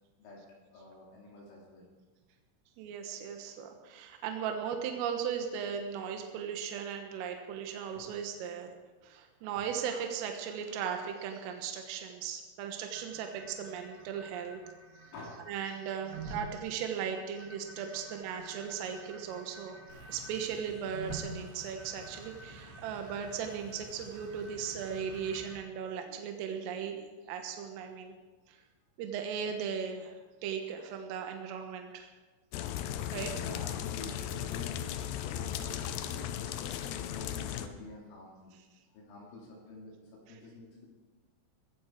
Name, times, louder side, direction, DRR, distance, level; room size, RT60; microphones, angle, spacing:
voice 1, 0.7-1.9 8.0-8.1 15.1-15.5 17.9-18.0 19.3-19.5 22.1-22.2 26.0-26.5 26.8-27.0 32.8-38.6 38.9-40.9, left 2 dB, 70° left, -3 dB, 5.2 m, -49 dB
voice 2, 2.8-8.7 9.0-14.6 15.5-19.8 20.1-27.0 27.3-28.2 28.5-28.6 29.0-30.1 30.4-32.1 33.1-33.3, right 7 dB, 85° right, 4 dB, 3.8 m, -37 dB
sound 1, 12.9-25.6, right 2 dB, 25° right, 1.9 m, -49 dB
sound 2, 19.9-25.5, right 1 dB, 50° right, 4.0 m, -53 dB
sound 3, 32.5-37.7, left 11 dB, 90° left, 2.3 m, -36 dB
20.5 x 15.0 x 4.6 m, 1.3 s
omnidirectional pair, 5.8 m